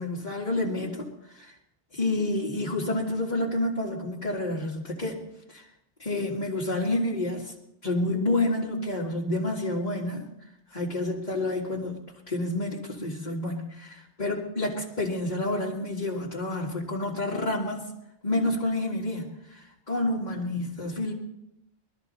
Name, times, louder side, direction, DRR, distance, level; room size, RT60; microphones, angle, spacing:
voice 1, 0.0-1.5 1.9-5.6 6.0-7.5 7.8-10.2 10.7-17.9 18.2-21.1, left 2 dB, 40° left, -6 dB, 2.1 m, -29 dB
22.5 x 13.5 x 4.1 m, 0.85 s
omnidirectional pair, 1.1 m